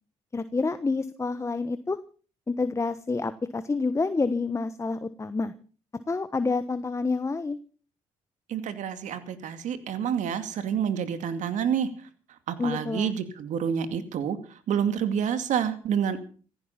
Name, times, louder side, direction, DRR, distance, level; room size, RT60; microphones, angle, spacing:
voice 1, 0.3-2.0 2.5-5.5 5.9-7.6 12.6-13.1, left 3 dB, 20° left, 12 dB, 1.1 m, -28 dB
voice 2, 8.5-11.9 12.5-14.4 14.7-16.2, right 8 dB, 70° right, 11 dB, 2.4 m, -28 dB
15.5 x 14.5 x 5.8 m, 0.40 s
supercardioid pair, 65°, 13 cm